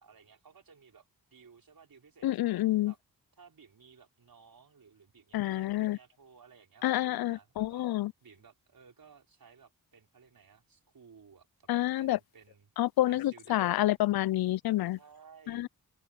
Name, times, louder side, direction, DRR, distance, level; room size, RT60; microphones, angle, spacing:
voice 1, 0.0-2.5 2.9-3.0 3.4-7.9 8.2-11.7 12.0-12.7 13.1-13.9 14.9-15.7, right 6 dB, 60° right, 5.0 m, -58 dB
voice 2, 2.2-2.9 5.3-6.0 6.8-8.1 11.7-12.2 12.8-15.0 15.5-15.7, left 15 dB, 65° left, 0.5 m, -28 dB
open air
supercardioid pair, 45°, 39 cm